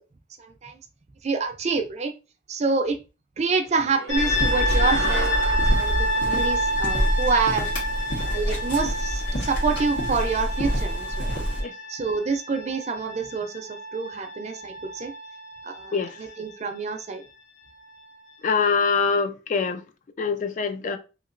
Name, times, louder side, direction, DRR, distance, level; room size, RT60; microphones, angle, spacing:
voice 1, 0.4-0.7 1.2-2.1 2.5-3.0 3.4-7.7 8.2-11.3 11.9-15.1 15.6-15.9 16.2-17.2, right 4 dB, 40° right, 0.4 m, -27 dB
sound 1, 3.6-8.3, right 3 dB, 90° right, 0.6 m, -36 dB
sound 2, 4.1-16.9, equal, 65° left, 0.8 m, -29 dB
sound 3, 4.2-11.6, equal, 85° left, 1.5 m, -27 dB
voice 2, 18.4-19.8 20.2-21.0, left 5 dB, 45° left, 0.3 m, -24 dB
2.9 x 2.8 x 2.5 m
head